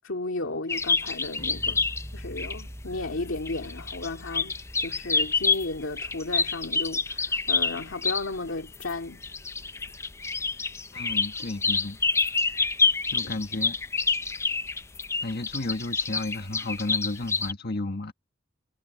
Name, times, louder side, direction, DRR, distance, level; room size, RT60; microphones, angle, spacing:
voice 1, 0.0-1.9 2.1-4.5 4.8-9.2, left 2 dB, 70° left, 2.4 m, -34 dB
sound 1, 0.7-8.3 8.7-17.5, left 4 dB, 15° left, 0.4 m, -27 dB
sound 2, 1.4-7.4, equal, 5° right, 3.1 m, -44 dB
voice 2, 10.9-12.0 13.0-13.8 15.2-18.1, left 2 dB, 55° left, 1.5 m, -33 dB
head